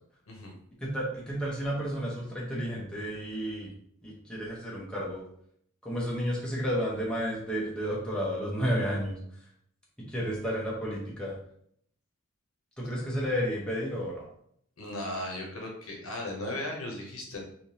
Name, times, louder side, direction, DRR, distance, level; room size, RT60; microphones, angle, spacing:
voice 1, 0.8-3.7 4.0-5.2 5.8-9.2 10.1-11.3 12.8-14.2, equal, 5° left, -6 dB, 0.8 m, -31 dB
voice 2, 14.8-17.4, left 1 dB, 65° left, 0 dB, 0.8 m, -36 dB
3.4 x 2.7 x 2.8 m, 0.68 s
head